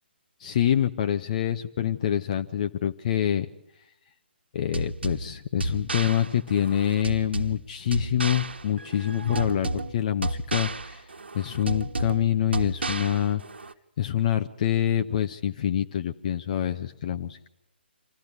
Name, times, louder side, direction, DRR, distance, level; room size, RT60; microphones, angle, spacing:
voice 1, 0.4-3.5 4.5-11.1 11.3-13.4 14.0-17.5, left 10 dB, 40° left, 7 dB, 0.8 m, -26 dB
sound 1, 4.7-13.7, right 2 dB, 70° right, 1.3 m, -32 dB
26.5 x 15.0 x 9.5 m, 0.85 s
figure-of-eight pair, 135°, 6 cm